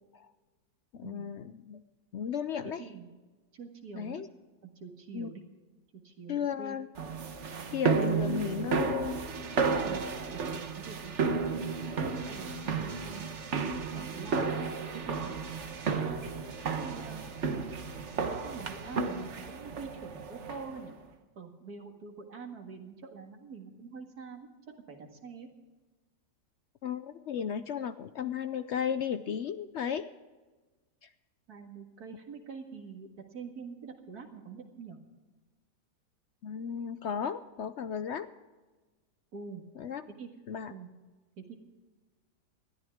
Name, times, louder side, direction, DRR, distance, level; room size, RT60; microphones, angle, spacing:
voice 1, 0.9-1.8 2.1-2.8 3.9-4.3 5.1-5.3 6.3-6.9 7.7-9.2 12.7-12.8 26.8-30.1 31.0-31.1 36.4-38.3 39.8-40.0 40.5-40.7, left 8 dB, 75° left, 11 dB, 0.6 m, -34 dB
voice 2, 2.6-3.1 3.5-4.2 4.6-5.4 6.0-6.8 9.8-10.0 10.3-11.7 12.3-13.3 13.9-15.3 16.0-16.2 16.6-17.3 18.1-21.0 21.4-24.5 24.9-25.5 31.5-35.0 39.3-39.6 40.2-40.3 40.7-40.9 41.4-41.5, right 5 dB, 65° right, 3 dB, 2.4 m, -45 dB
sound 1, 7.0-20.8, right 5 dB, 45° right, 1.3 m, -33 dB
20.5 x 13.5 x 3.6 m, 1.3 s
omnidirectional pair, 1.8 m